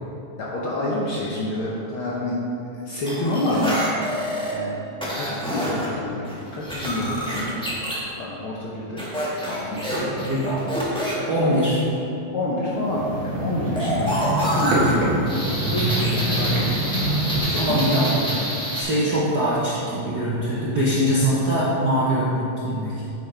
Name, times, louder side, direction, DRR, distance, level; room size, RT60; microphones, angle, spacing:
voice 1, 0.4-2.4 2.8-3.9 4.5-4.8 5.1-7.5 8.2-9.1 9.5-10.3 11.4-11.5 12.3-17.0 17.3-18.3, left 1 dB, 65° left, -5 dB, 1.4 m, -28 dB
sound 1, 3.1-4.5 5.0-5.9 6.3-8.0 9.0-11.1 13.8-18.8, equal, 5° left, 1.0 m, -27 dB
voice 2, 9.9-10.6 11.3-11.8 17.6-18.4 18.7-23.0, equal, 55° right, -8 dB, 1.1 m, -22 dB
sound 2, 12.7-17.4, right 1 dB, 85° right, 3.2 m, -25 dB
9.3 x 8.9 x 3.4 m, 2.8 s
omnidirectional pair, 3.4 m